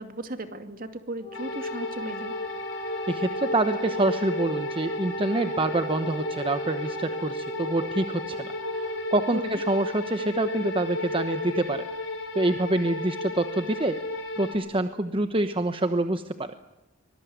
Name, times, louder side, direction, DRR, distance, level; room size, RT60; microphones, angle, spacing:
voice 1, 0.0-2.3 9.3-9.6, right 2 dB, 45° right, 8 dB, 2.5 m, -36 dB
Wind instrument woodwind instrument, 1.2-9.2, right 3 dB, 30° left, 3.0 m, -38 dB
sound 1, 1.3-14.6, left 1 dB, 85° left, 5.6 m, -33 dB
voice 2, 3.1-8.5 9.1-11.8 12.3-14.0 14.4-16.5, right 2 dB, 30° right, 9 dB, 1.1 m, -26 dB
24.5 x 21.0 x 9.5 m, 0.92 s
head